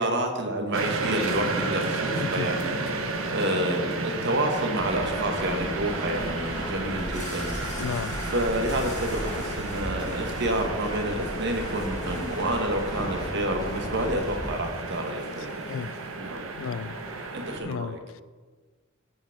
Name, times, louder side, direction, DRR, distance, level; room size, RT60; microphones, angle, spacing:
voice 1, 0.0-7.8 8.3-15.5 16.2-16.4 17.3-18.0, right 1 dB, 60° right, 4 dB, 1.2 m, -29 dB
sound 1, 0.7-17.6, right 3 dB, 85° right, 0.9 m, -33 dB
voice 2, 2.1-2.5 7.8-8.2 15.6-15.9 16.5-17.0 17.6-18.2, left 7 dB, 70° left, 17 dB, 0.3 m, -34 dB
sound 2, 4.7-14.7, equal, 20° left, 1.5 m, -36 dB
sound 3, 6.8-16.3, left 3 dB, 35° left, 1.7 m, -48 dB
14.5 x 5.1 x 3.5 m, 1.4 s
head